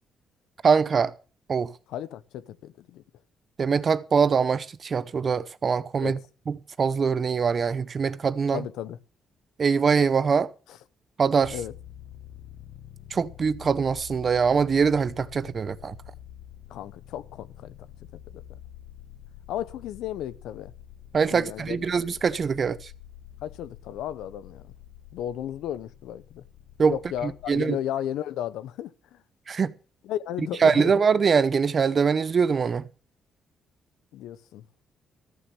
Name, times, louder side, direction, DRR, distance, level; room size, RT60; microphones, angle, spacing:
voice 1, 0.6-1.1 1.5-1.7 3.6-6.2 6.5-8.7 9.6-10.5 11.2-11.6 13.1-16.0 21.1-22.9 26.8-26.9 27.2-27.8 29.5-29.7 30.6-32.9, right 5 dB, 45° right, 0.8 m, -23 dB
voice 2, 1.9-3.0 6.0-6.2 8.5-9.0 10.7-10.8 11.5-11.7 16.7-17.8 18.3-18.6 19.5-20.7 21.3-21.9 23.4-24.7 25.1-26.4 26.9-29.2 30.0-30.9 34.1-34.6, left 11 dB, 85° left, 0.7 m, -34 dB
sound 1, 11.4-27.7, left 11 dB, 70° left, 1.1 m, -47 dB
14.0 x 6.9 x 6.9 m
cardioid pair, 90°, 0 cm